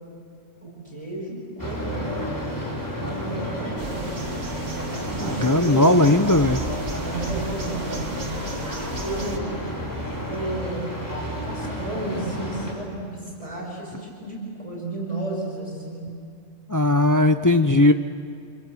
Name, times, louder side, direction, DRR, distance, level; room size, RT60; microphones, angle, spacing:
voice 1, 0.6-2.3 3.0-4.5 4.9-6.0 7.0-9.4 10.3-11.0 11.4-16.0, right 1 dB, 25° right, -3 dB, 5.5 m, -33 dB
sound 1, 1.6-12.7, equal, 15° left, 3.4 m, -31 dB
sound 2, 3.8-9.4, right 2 dB, 65° right, 2.1 m, -36 dB
voice 2, 5.4-6.6 16.7-17.9, left 2 dB, 30° left, 8 dB, 0.3 m, -17 dB
27.0 x 22.5 x 7.7 m, 2.4 s
omnidirectional pair, 1.3 m